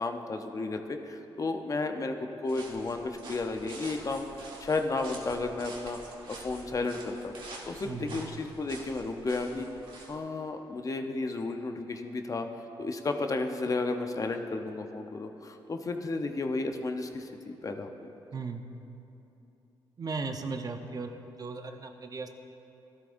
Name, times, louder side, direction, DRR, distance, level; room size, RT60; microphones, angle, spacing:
voice 1, 0.0-6.0 6.3-7.3 7.6-9.7 10.1-12.5 12.8-18.1, left 3 dB, 35° left, 5 dB, 0.8 m, -33 dB
sound 1, 2.5-10.2, right 2 dB, 65° right, 1.8 m, -47 dB
voice 2, 7.8-8.2 18.3-18.6 20.0-22.3, right 4 dB, 40° right, 5 dB, 0.8 m, -37 dB
14.0 x 12.5 x 2.6 m, 2.9 s
cardioid pair, 80°, 9 cm